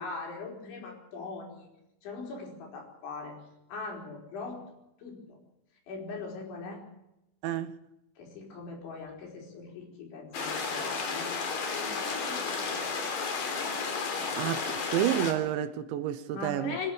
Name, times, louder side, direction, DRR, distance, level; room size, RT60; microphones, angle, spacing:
voice 1, 0.0-1.7 2.0-3.4 3.7-4.6 5.0-5.4 5.9-6.8 8.2-11.3 11.7-13.4 14.1-14.4 16.3-16.9, left 4 dB, 70° left, 7.1 m, -41 dB
voice 2, 7.4-7.8 14.4-16.8, right 11 dB, 75° right, 3.0 m, -30 dB
sound 1, 10.3-15.3, left 4 dB, 45° left, 4.1 m, -32 dB
25.5 x 12.5 x 8.6 m
omnidirectional pair, 5.6 m